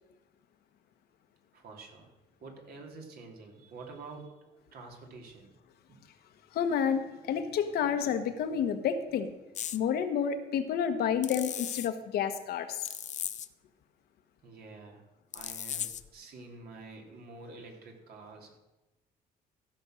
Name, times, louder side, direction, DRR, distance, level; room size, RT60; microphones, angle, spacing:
voice 1, 1.5-2.1 2.4-5.5 14.4-15.0 15.3-18.6, right 3 dB, 65° right, 1 dB, 2.9 m, -48 dB
voice 2, 6.5-9.3 9.7-12.9, left 7 dB, 70° left, 8 dB, 1.2 m, -30 dB
sound 1, 9.6-9.8 11.2-11.9 12.8-13.5 15.3-16.1, left 10 dB, 45° left, 0.6 m, -37 dB
15.0 x 6.1 x 6.4 m, 1.0 s
cardioid pair, 110°, 17 cm